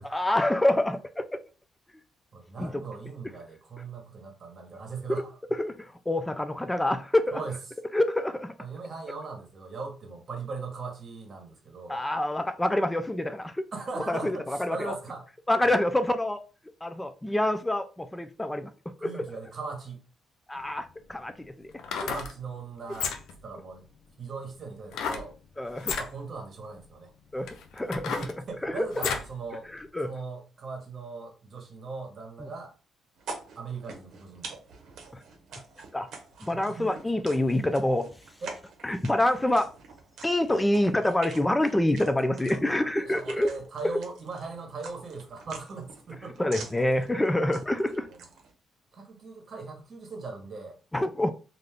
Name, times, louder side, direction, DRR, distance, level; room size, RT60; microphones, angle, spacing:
voice 1, 0.0-1.4 2.6-2.8 5.5-7.4 7.9-8.5 11.9-13.6 14.1-15.0 15.5-16.4 16.8-18.7 19.0-19.2 20.5-21.7 22.0-22.1 25.6-26.0 27.3-28.3 28.6-28.9 29.9-30.1 32.4-32.5 35.1-35.2 35.9-36.1 36.4-38.1 38.8-39.7 40.2-43.5 43.9-44.0 46.4-48.1 50.9-51.3, left 1 dB, 10° left, 0.3 m, -26 dB
voice 2, 2.3-5.4 7.3-7.6 8.6-12.0 13.7-15.2 15.6-15.8 19.0-20.0 22.0-23.1 23.4-23.8 24.2-25.3 25.9-27.1 28.1-29.7 30.0-32.7 33.6-34.6 36.5-37.0 38.4-38.6 42.2-46.4 48.0-48.3 48.9-50.8, right 4 dB, 45° right, 1.0 m, -39 dB
sound 1, 20.6-20.7 21.7-22.3 22.9-23.4 24.9-25.3 25.8-26.1 26.8-26.9 27.4-29.3 29.8-29.9, left 6 dB, 80° left, 0.5 m, -32 dB
sound 2, 33.2-48.5, right 4 dB, 75° right, 0.7 m, -47 dB
2.5 x 2.3 x 3.4 m
cardioid pair, 90°, 0 cm